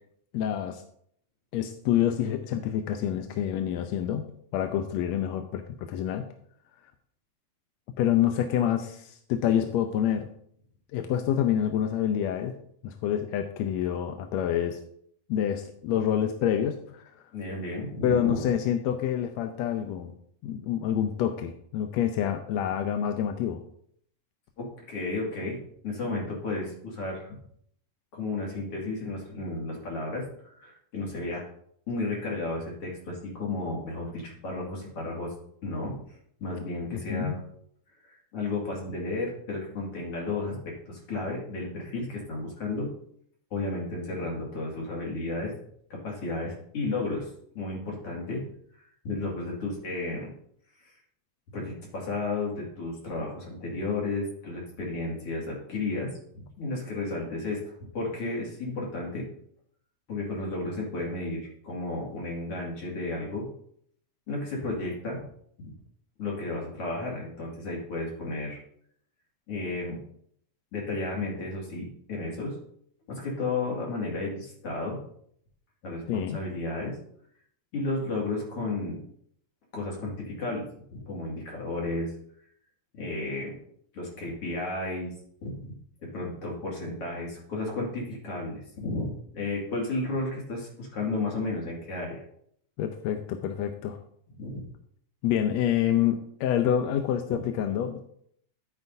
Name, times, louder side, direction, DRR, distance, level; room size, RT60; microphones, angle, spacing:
voice 1, 0.3-0.8 1.5-4.2 4.5-6.2 8.0-10.3 10.9-12.5 12.8-14.8 15.3-17.0 18.0-20.1 20.4-23.6 36.9-37.3 76.1-76.4 92.8-94.0 95.2-98.0, left 10 dB, 75° left, 6 dB, 1.8 m, -27 dB
voice 2, 17.3-18.5 24.6-25.6 25.8-27.3 28.1-30.2 30.6-31.4 31.9-35.3 35.6-36.0 36.4-37.4 38.0-42.9 43.5-45.5 45.9-47.3 47.5-48.4 49.0-50.3 50.8-50.9 51.5-57.6 57.9-59.3 60.1-63.5 64.3-65.2 65.6-65.7 66.2-68.6 69.5-70.0 70.7-72.6 73.1-75.0 75.8-77.0 77.7-79.0 79.7-80.7 80.9-82.1 82.9-83.5 83.9-85.1 85.4-85.8 86.0-92.2 94.4-94.7 97.3-97.4, left 2 dB, 55° left, -3 dB, 3.0 m, -33 dB
10.5 x 9.3 x 2.7 m, 0.67 s
omnidirectional pair, 3.3 m